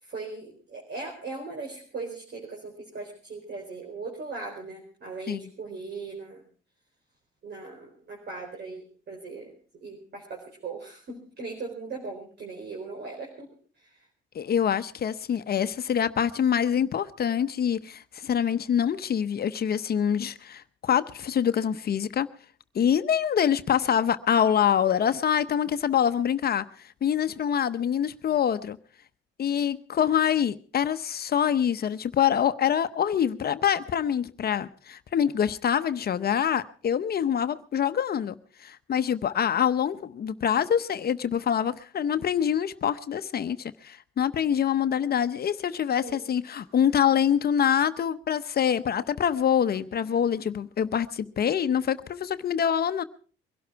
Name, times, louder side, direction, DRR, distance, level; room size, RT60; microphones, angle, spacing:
voice 1, 0.0-6.4 7.4-13.5 13.8-14.1 46.0-46.3, right 3 dB, 55° right, 4.3 m, -39 dB
voice 2, 14.3-22.3 22.7-26.7 27.0-28.8 29.4-38.4 38.6-53.0, left 8 dB, 50° left, 0.8 m, -25 dB
23.0 x 12.0 x 4.6 m
cardioid pair, 90°, 20 cm